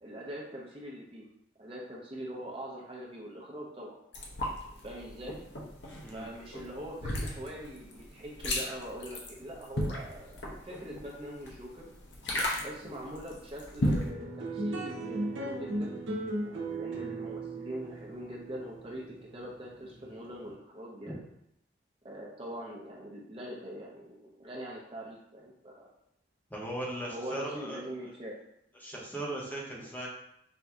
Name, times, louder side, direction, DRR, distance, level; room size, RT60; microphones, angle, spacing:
voice 1, 0.0-1.3 1.6-4.0 4.8-5.4 6.0-10.4 10.6-11.9 12.6-16.0 16.4-19.0 19.3-21.2 22.0-25.9 27.0-28.4, equal, 30° right, -3 dB, 0.6 m, -42 dB
sound 1, 4.1-14.1, left 1 dB, 70° left, 0.8 m, -36 dB
sound 2, 13.8-20.5, right 2 dB, 85° right, 0.8 m, -37 dB
voice 2, 26.5-27.8 28.8-30.1, right 1 dB, 10° left, -3 dB, 0.7 m, -38 dB
4.3 x 2.7 x 3.5 m, 0.79 s
head